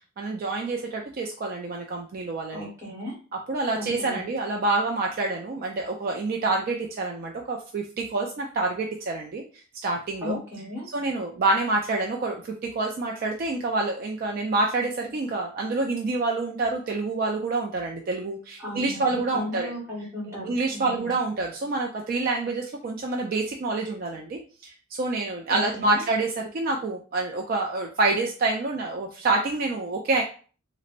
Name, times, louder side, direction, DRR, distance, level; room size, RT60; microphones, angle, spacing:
voice 1, 0.2-2.7 3.5-9.4 9.8-10.4 10.9-19.7 20.3-30.2, right 3 dB, 45° right, 1 dB, 0.3 m, -27 dB
voice 2, 2.5-3.2 3.8-4.2 10.2-10.9 18.6-21.1 25.5-26.0, left 1 dB, 15° right, -5 dB, 1.2 m, -36 dB
4.1 x 2.0 x 2.5 m, 0.40 s
head